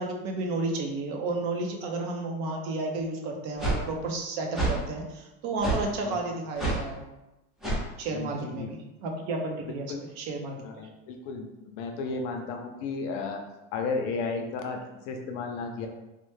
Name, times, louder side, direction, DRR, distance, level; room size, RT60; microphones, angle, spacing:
voice 1, 0.0-7.0 8.0-10.9, right 2 dB, 60° right, 1 dB, 0.7 m, -32 dB
sound 1, 3.6-3.8 4.5-4.8 5.6-5.8 6.6-6.8 7.6-7.8, right 2 dB, ahead, 0.5 m, -27 dB
voice 2, 8.1-8.7 9.7-10.0 10.6-13.4 13.7-15.9, left 4 dB, 60° left, 3 dB, 0.5 m, -34 dB
3.1 x 2.1 x 3.2 m, 0.97 s
cardioid pair, 160°, 31 cm